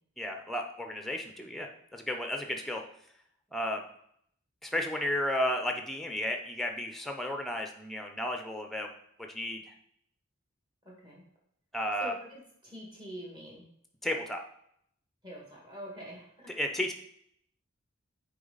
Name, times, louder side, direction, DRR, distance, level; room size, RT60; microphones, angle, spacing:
voice 1, 0.2-2.8 3.5-3.8 4.6-8.9 9.2-9.6 11.7-12.1 14.0-14.4 16.5-16.9, left 1 dB, ahead, 3 dB, 0.6 m, -33 dB
voice 2, 12.0-13.6 15.2-16.6, equal, 20° right, -3 dB, 2.1 m, -45 dB
6.6 x 4.8 x 4.0 m, 0.69 s
head